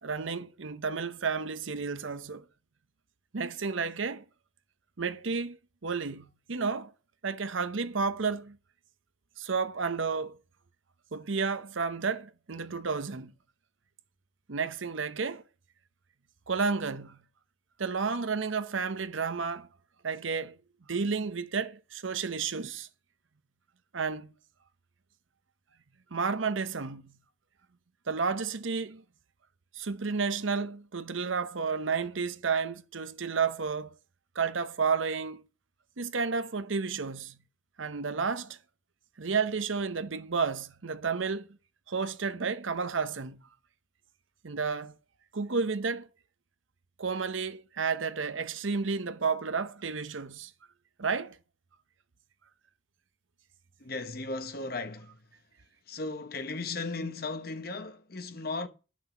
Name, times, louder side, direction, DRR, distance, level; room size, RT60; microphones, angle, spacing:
voice 1, 0.0-2.5 3.3-4.2 5.0-5.6 5.8-6.9 7.2-8.6 9.4-10.4 11.1-13.3 14.5-15.4 16.5-17.2 17.8-19.7 20.0-20.6 20.9-22.9 23.9-24.3 26.1-27.1 28.1-29.0 29.8-33.9 34.3-35.4 36.0-37.4 37.8-38.6 39.2-41.5 41.9-43.4 44.4-45.0 45.3-46.1 47.0-50.5 51.0-51.4, right 5 dB, 85° right, 0.8 m, -31 dB
voice 2, 53.8-55.2 55.9-58.7, left 3 dB, 50° left, 1.1 m, -36 dB
10.5 x 6.2 x 7.2 m
head